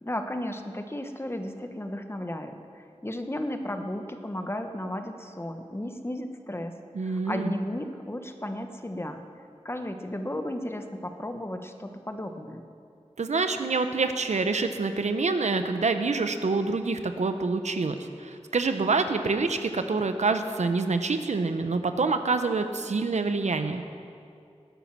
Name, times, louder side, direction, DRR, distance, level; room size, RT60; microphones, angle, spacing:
voice 1, 0.0-6.7 7.1-9.2 9.6-12.6, left 1 dB, 20° left, 6 dB, 1.2 m, -34 dB
voice 2, 6.9-7.5 13.2-23.8, right 4 dB, 85° right, 8 dB, 0.9 m, -26 dB
19.5 x 9.4 x 6.1 m, 2.4 s
wide cardioid pair, 55°, 12 cm